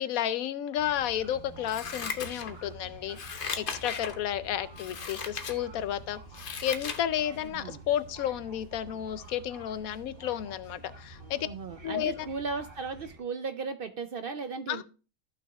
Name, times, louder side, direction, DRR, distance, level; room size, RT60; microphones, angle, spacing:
voice 1, 0.0-3.2 3.6-11.5 11.8-12.3 14.7-14.8, left 11 dB, 85° left, 14 dB, 1.1 m, -32 dB
sound 1, 0.8-13.2, right 3 dB, 40° right, 1.9 m, -49 dB
Scissors, 1.7-2.8 3.1-4.2 4.7-5.6 6.0-7.0 7.4-7.5, left 5 dB, 45° left, 0.9 m, -37 dB
voice 2, 7.4-7.8 11.3-14.8, right 4 dB, 55° right, 9 dB, 0.6 m, -36 dB
14.5 x 6.0 x 2.3 m, 0.34 s
omnidirectional pair, 1.4 m